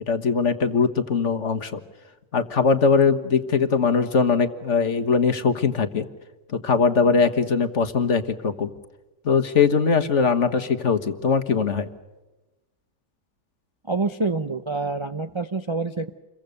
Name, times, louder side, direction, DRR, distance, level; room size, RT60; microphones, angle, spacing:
voice 1, 0.1-1.8 2.3-6.1 6.5-8.7 9.3-11.9, left 5 dB, 50° left, 8 dB, 1.7 m, -21 dB
voice 2, 13.9-16.1, right 3 dB, 25° right, 7 dB, 0.6 m, -26 dB
28.5 x 23.0 x 6.6 m, 1.1 s
omnidirectional pair, 1.6 m